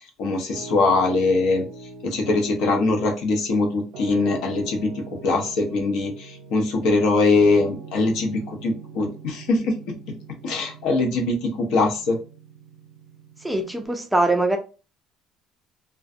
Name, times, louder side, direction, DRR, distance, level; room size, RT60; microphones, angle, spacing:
voice 1, 0.2-1.6 2.0-10.2 10.4-12.2, left 3 dB, 70° left, 0.7 m, -22 dB
Piano, 0.5-13.9, right 4 dB, 80° right, 0.7 m, -43 dB
voice 2, 13.4-14.6, right 2 dB, 5° right, 0.4 m, -22 dB
2.4 x 2.2 x 2.5 m
cardioid pair, 145°, 0 cm